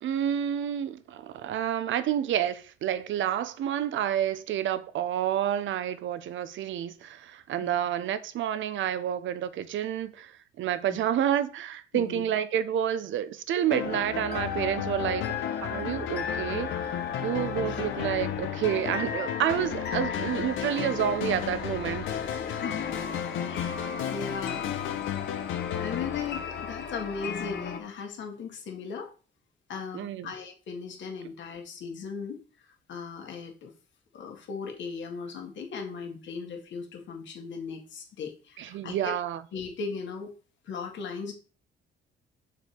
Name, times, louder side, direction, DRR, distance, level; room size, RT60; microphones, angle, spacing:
voice 1, 0.0-15.3 15.6-22.1 29.9-30.3 38.6-39.4, right 10 dB, 75° right, 0.8 m, -29 dB
sound 1, 13.7-27.2, left 9 dB, 85° left, 0.9 m, -34 dB
sound 2, 13.8-27.8, left 6 dB, 55° left, 1.1 m, -36 dB
voice 2, 22.5-23.1 23.4-24.8 25.7-29.1 29.7-32.4 32.6-33.7 34.1-39.1 39.5-40.3 40.6-41.3, left 5 dB, 70° left, 2.0 m, -38 dB
7.0 x 5.0 x 4.5 m
cardioid pair, 90°, 20 cm